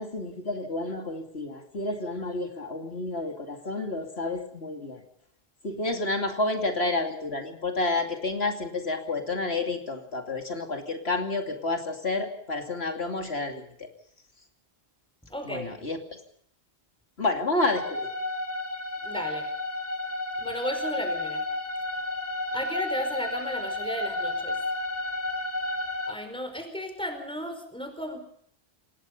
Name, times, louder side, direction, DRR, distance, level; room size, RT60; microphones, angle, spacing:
voice 1, 0.0-5.0 5.6-13.9 15.4-16.0 17.2-18.1, left 2 dB, 85° left, 5 dB, 2.9 m, -30 dB
voice 2, 15.3-15.8 19.0-19.4 20.4-21.4 22.5-24.6 26.1-28.2, equal, 5° left, 6 dB, 4.9 m, -34 dB
sound 1, 17.6-26.1, left 2 dB, 10° right, 3.6 m, -32 dB
26.5 x 20.0 x 5.4 m, 0.64 s
omnidirectional pair, 1.0 m